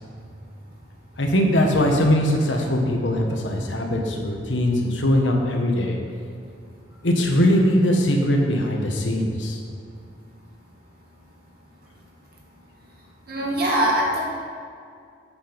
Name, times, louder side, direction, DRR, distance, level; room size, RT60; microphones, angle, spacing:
voice 1, 1.2-6.0 7.0-9.6, left 1 dB, 85° left, 1 dB, 1.2 m, -21 dB
voice 2, 13.3-14.3, right 1 dB, 60° right, -3 dB, 1.9 m, -22 dB
8.6 x 5.8 x 5.2 m, 2.3 s
head